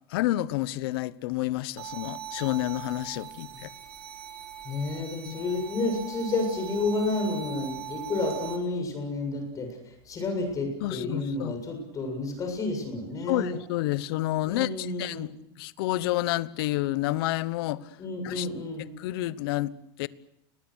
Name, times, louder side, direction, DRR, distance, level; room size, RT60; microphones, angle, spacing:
voice 1, 0.1-3.7 10.8-11.6 13.3-17.9 18.2-18.5 19.0-20.1, left 16 dB, 70° left, 1.1 m, -29 dB
sound 1, 1.8-8.6, right 10 dB, 80° right, 5.1 m, -40 dB
voice 2, 4.6-13.6 14.5-15.2 18.0-18.9, left 3 dB, 25° left, 7.4 m, -30 dB
29.5 x 22.0 x 6.4 m
supercardioid pair, 135°, 13 cm